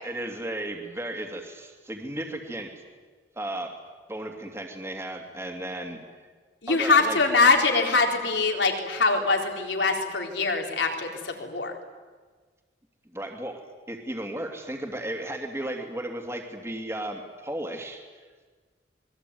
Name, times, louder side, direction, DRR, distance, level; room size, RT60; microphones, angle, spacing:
voice 1, 0.0-2.7 3.3-3.7 4.1-6.0 6.7-7.2 13.1-13.6 13.9-18.0, right 1 dB, 15° right, 3 dB, 2.9 m, -34 dB
voice 2, 6.6-11.7, left 3 dB, 80° left, 2 dB, 4.1 m, -23 dB
27.0 x 21.5 x 9.6 m, 1.4 s
head